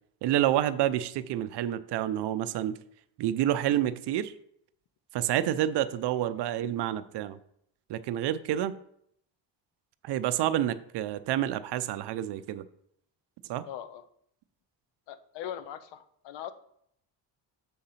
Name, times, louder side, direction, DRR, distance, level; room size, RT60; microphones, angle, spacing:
voice 1, 0.2-2.7 3.2-4.3 5.1-7.4 7.9-8.8 10.0-12.7 13.5-13.7, right 12 dB, 65° right, 13 dB, 0.5 m, -28 dB
voice 2, 13.7-14.0 15.1-16.5, left 10 dB, 75° left, 11 dB, 0.7 m, -40 dB
7.0 x 3.8 x 5.7 m, 0.70 s
cardioid pair, 150°, 44 cm